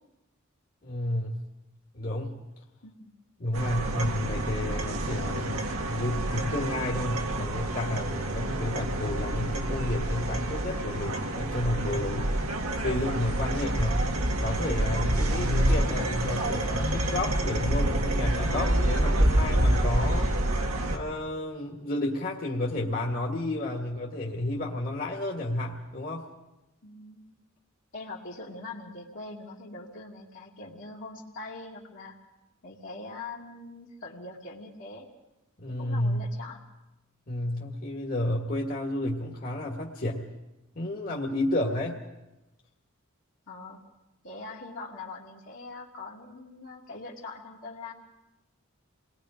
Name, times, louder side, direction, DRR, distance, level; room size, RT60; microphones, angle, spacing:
voice 1, 0.8-1.4 1.9-2.4 3.4-12.3 12.8-14.0 14.4-20.3 20.9-26.3 35.6-36.3 37.3-40.3 40.8-42.0, left 1 dB, 45° left, -2 dB, 1.8 m, -31 dB
voice 2, 2.8-3.1 26.8-27.2 27.9-32.2 32.6-35.1 35.8-36.6 43.5-43.8 44.2-47.9, left 3 dB, 65° left, -5 dB, 2.4 m, -42 dB
sound 1, 3.5-21.0, right 1 dB, 85° right, 2.0 m, -27 dB
28.5 x 20.5 x 5.0 m, 0.96 s
head